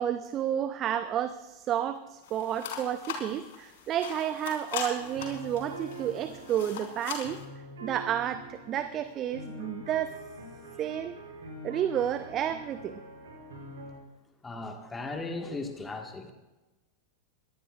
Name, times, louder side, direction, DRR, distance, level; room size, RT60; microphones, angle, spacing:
voice 1, 0.0-7.4 7.8-10.2 10.8-11.2 11.6-13.0, right 10 dB, 30° right, 12 dB, 0.7 m, -31 dB
sound 1, 2.2-7.4, left 7 dB, 55° left, 3.5 m, -40 dB
sound 2, 5.0-13.9, right 1 dB, 65° right, 6.3 m, -45 dB
voice 2, 14.4-16.3, left 3 dB, 15° left, 4 dB, 1.7 m, -37 dB
22.5 x 18.0 x 2.5 m, 1.1 s
figure-of-eight pair, 90°, 0 cm